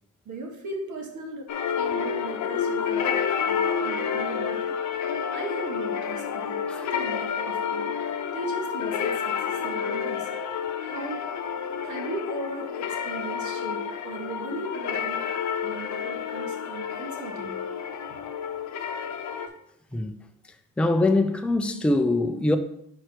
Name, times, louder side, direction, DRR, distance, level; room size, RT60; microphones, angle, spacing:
voice 1, 0.2-1.5 1.8-3.2 3.4-4.7 5.3-6.6 6.9-7.9 8.3-10.3 10.8-11.2 11.8-15.3 15.6-17.6 18.1-18.2 19.9-20.0, right 3 dB, 70° right, 1.4 m, -38 dB
sound 1, 1.5-19.5, left 7 dB, 65° left, 0.7 m, -29 dB
voice 2, 20.8-22.6, left 2 dB, 5° left, 0.4 m, -23 dB
4.9 x 4.5 x 4.5 m
cardioid pair, 115°, 31 cm